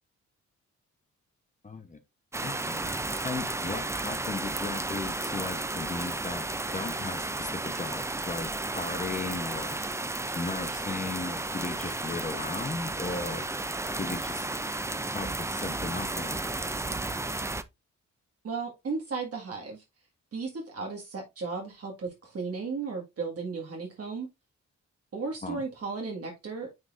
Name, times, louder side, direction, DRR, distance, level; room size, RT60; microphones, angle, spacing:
voice 1, 1.6-2.0 2.4-2.9 3.2-6.5 6.7-9.8 10.3-13.5 14.0-14.5 15.1-16.4 25.4-25.6, left 3 dB, 25° left, 0.9 m, -36 dB
sound 1, 2.3-17.6, right 2 dB, 10° right, 0.4 m, -33 dB
voice 2, 18.4-19.8 20.3-24.3 25.1-26.7, right 4 dB, 50° right, 1.9 m, -35 dB
9.5 x 4.1 x 2.5 m
wide cardioid pair, 130°, 30 cm